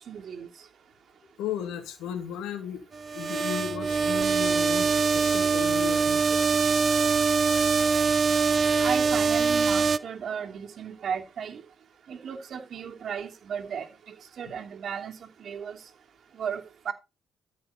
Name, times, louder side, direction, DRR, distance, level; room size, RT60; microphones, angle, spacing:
voice 1, 0.1-0.5 8.8-11.6 12.1-13.9 14.4-15.8 16.3-16.9, right 7 dB, 60° right, 2.9 m, -35 dB
voice 2, 1.4-2.8 3.1-6.4, left 9 dB, 90° left, 2.6 m, -35 dB
sound 1, 2.9-10.0, right 5 dB, 45° right, 0.7 m, -23 dB
13.5 x 6.2 x 4.4 m
cardioid pair, 90°, 0 cm